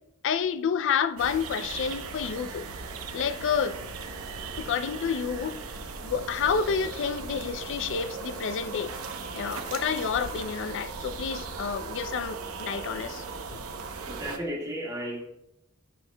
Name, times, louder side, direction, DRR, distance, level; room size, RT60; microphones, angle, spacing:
voice 1, 0.2-2.6 3.1-3.8 4.6-5.5 6.0-8.9 9.3-13.2, left 6 dB, 60° left, 0.4 m, -29 dB
sound 1, 1.2-14.4, right 4 dB, 90° right, 0.8 m, -38 dB
voice 2, 14.1-15.2, equal, 15° right, 1.7 m, -33 dB
11.0 x 6.3 x 2.2 m
head